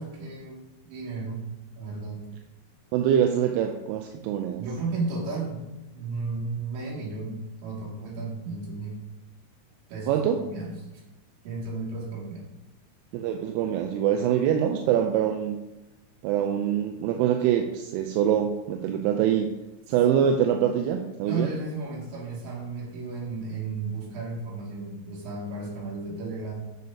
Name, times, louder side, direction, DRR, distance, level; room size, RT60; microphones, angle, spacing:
voice 1, 0.0-1.4 1.8-2.2 4.6-5.7 6.0-9.0 9.9-10.1 10.4-11.0 11.4-12.5 20.2-20.3 21.2-26.5, right 3 dB, 65° right, -4 dB, 4.5 m, -34 dB
voice 2, 2.9-4.6 10.1-10.4 13.1-15.6 16.2-19.5 19.9-21.5, right 9 dB, 85° right, 3 dB, 3.2 m, -24 dB
10.5 x 6.7 x 2.8 m, 1.0 s
omnidirectional pair, 5.8 m